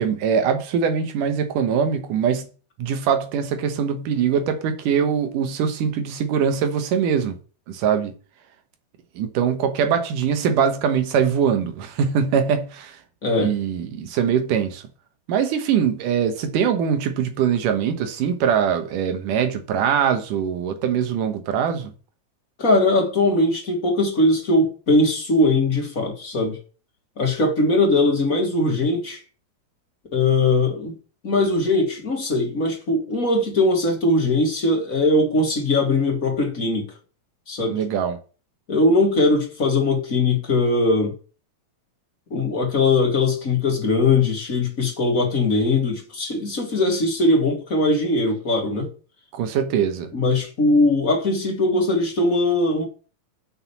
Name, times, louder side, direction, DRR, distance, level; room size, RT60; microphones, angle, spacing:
voice 1, 0.0-2.5 2.8-7.4 7.7-8.1 9.2-13.0 13.4-14.9 15.3-21.9 37.7-38.2 49.3-50.1, right 7 dB, 85° right, 2.8 m, -22 dB
voice 2, 13.2-13.5 22.6-26.6 27.2-29.2 30.1-30.9 31.2-36.9 37.5-37.8 38.7-41.1 42.3-48.9 50.1-52.8, left 2 dB, 30° left, 2.2 m, -20 dB
6.5 x 6.0 x 7.1 m
omnidirectional pair, 3.6 m